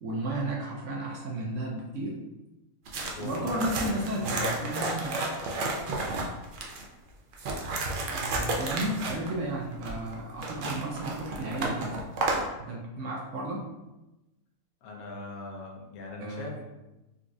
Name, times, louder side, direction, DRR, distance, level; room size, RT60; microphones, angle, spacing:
voice 1, 0.0-2.2 3.2-5.3 8.1-12.0 12.6-13.6 16.2-16.6, right 1 dB, 65° right, -1 dB, 0.8 m, -33 dB
sound 1, 2.9-6.8 7.3-12.5, right 2 dB, 90° right, 0.4 m, -32 dB
voice 2, 3.1-3.8 14.8-16.6, left 2 dB, 85° left, 0 dB, 1.2 m, -39 dB
3.9 x 2.3 x 2.5 m, 1.0 s
omnidirectional pair, 1.5 m